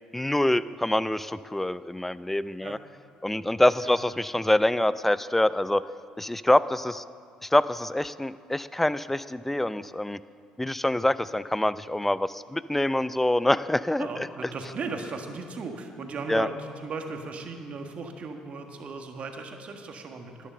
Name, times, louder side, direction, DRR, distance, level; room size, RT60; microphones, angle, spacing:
voice 1, 0.1-2.8 3.2-5.8 6.2-7.0 7.4-10.2 10.6-14.3 16.3-16.5, left 1 dB, 10° left, 16 dB, 0.4 m, -25 dB
voice 2, 14.0-20.5, right 4 dB, 50° right, 4 dB, 1.6 m, -36 dB
11.0 x 10.0 x 6.7 m, 2.2 s
hypercardioid pair, 60°, 3 cm